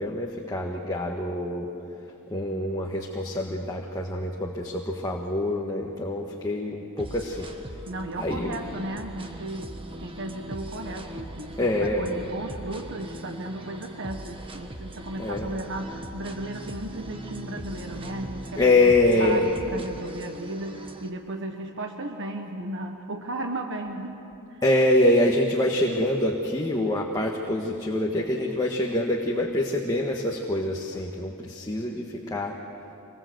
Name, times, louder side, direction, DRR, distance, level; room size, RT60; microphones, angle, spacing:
voice 1, 0.0-1.7 2.3-7.5 8.2-8.5 11.6-12.1 15.2-15.5 18.6-19.4 24.6-32.6, left 1 dB, 20° left, -1 dB, 1.5 m, -25 dB
sound 1, 7.0-21.1, right 1 dB, 25° right, 1.4 m, -40 dB
voice 2, 7.9-9.7 10.0-18.9 19.2-24.2 24.5-24.6, right 2 dB, 55° right, 3 dB, 1.3 m, -35 dB
26.0 x 20.5 x 8.0 m, 2.9 s
head